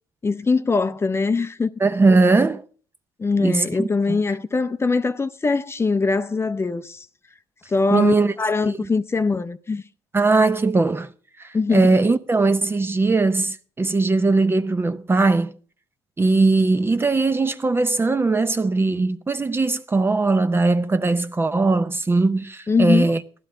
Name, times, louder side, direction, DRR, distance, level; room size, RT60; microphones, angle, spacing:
voice 1, 0.2-1.7 3.2-7.1 7.7-9.8 11.5-11.9 22.7-23.1, left 4 dB, 25° left, 0.6 m, -22 dB
voice 2, 1.8-2.6 3.4-4.2 7.9-8.3 8.7-8.9 10.1-11.1 11.4-15.5 16.2-23.2, right 3 dB, 20° right, 0.6 m, -20 dB
15.5 x 11.0 x 3.8 m
cardioid pair, 90°, 11 cm